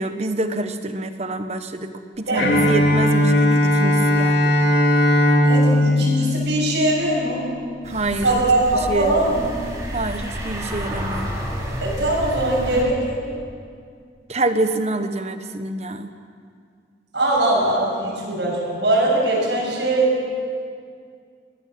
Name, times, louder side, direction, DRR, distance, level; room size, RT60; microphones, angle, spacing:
voice 1, 0.0-1.9 2.2-4.5 7.8-8.3 8.7-9.3 9.9-11.3 14.3-16.1, right 2 dB, 35° right, 9 dB, 1.1 m, -26 dB
Bowed string instrument, 2.4-7.3, left 1 dB, 60° left, 3.0 m, -18 dB
voice 2, 5.4-7.4 8.2-9.5 11.8-13.2 17.1-20.1, right 2 dB, 70° right, -5 dB, 6.9 m, -21 dB
sound 1, 7.8-12.8, equal, 15° right, 3.8 m, -30 dB
23.0 x 17.5 x 7.7 m, 2.2 s
head